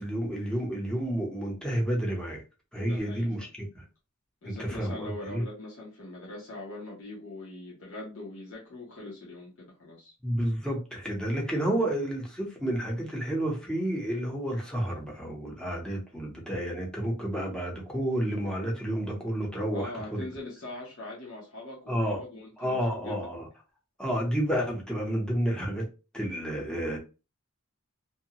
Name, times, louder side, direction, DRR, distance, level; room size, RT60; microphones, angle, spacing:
voice 1, 0.0-2.4 2.7-3.5 3.7-3.8 4.4-5.4 10.2-20.2 21.9-22.2 22.6-23.5 24.0-25.9 26.1-27.0, right 1 dB, 5° left, 0.8 m, -30 dB
voice 2, 2.8-3.5 4.4-10.1 19.7-23.2, left 2 dB, 65° left, 0.9 m, -42 dB
2.7 x 2.2 x 2.8 m
head